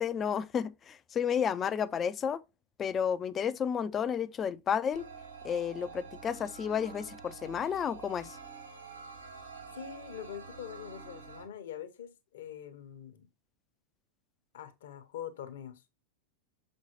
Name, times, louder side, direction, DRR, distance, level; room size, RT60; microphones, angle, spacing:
voice 1, 0.0-2.4 2.8-5.0 5.4-8.4, left 7 dB, 25° left, 0.4 m, -31 dB
sound 1, 4.9-11.4, right 5 dB, 80° right, 3.0 m, -48 dB
voice 2, 9.7-13.3 14.5-15.9, left 9 dB, 60° left, 0.9 m, -44 dB
6.1 x 5.4 x 2.9 m
figure-of-eight pair, 90°, 0 cm